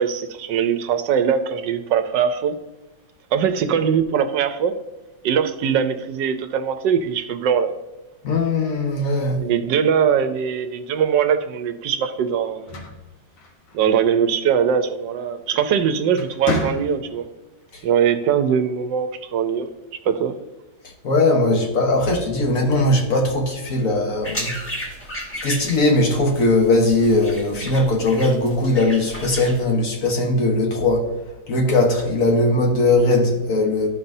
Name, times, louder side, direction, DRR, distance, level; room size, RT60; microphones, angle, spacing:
voice 1, 0.0-2.6 3.3-4.7 5.2-7.7 9.4-12.7 13.7-17.3 17.8-20.4, right 7 dB, 75° right, 1.2 m, -21 dB
voice 2, 8.2-9.4 17.7-17.8 21.0-24.5 25.4-31.0 31.5-33.9, left 2 dB, 50° left, 1.4 m, -19 dB
sound 1, 12.5-14.0 15.4-15.7 16.1-17.3, left 2 dB, 80° left, 2.0 m, -29 dB
sound 2, 24.2-29.6, equal, 10° left, 1.0 m, -34 dB
13.0 x 5.5 x 2.6 m
omnidirectional pair, 2.1 m